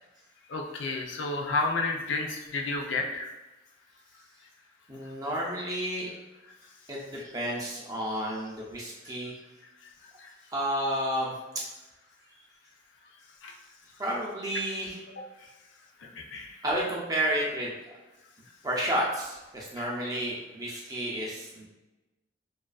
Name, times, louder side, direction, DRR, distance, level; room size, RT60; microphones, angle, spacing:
voice 1, 0.5-3.3 10.2-10.3 13.4-13.5 16.2-16.5 19.8-19.9, left 3 dB, 80° left, 1 dB, 0.4 m, -31 dB
voice 2, 4.9-6.1 6.9-9.3 10.5-11.6 14.0-15.0 16.6-17.7 18.6-21.7, right 1 dB, 20° right, -4 dB, 0.4 m, -31 dB
2.4 x 2.3 x 2.3 m, 1.1 s
head